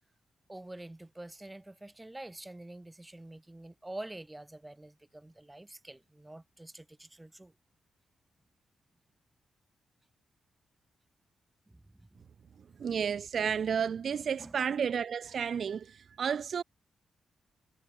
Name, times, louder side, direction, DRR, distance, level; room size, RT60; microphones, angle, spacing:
voice 1, 0.5-7.5 11.7-12.1 14.1-14.6, right 1 dB, 10° right, 3.4 m, -47 dB
voice 2, 12.8-16.6, right 7 dB, 55° right, 0.9 m, -32 dB
cardioid pair, 100°, 0 cm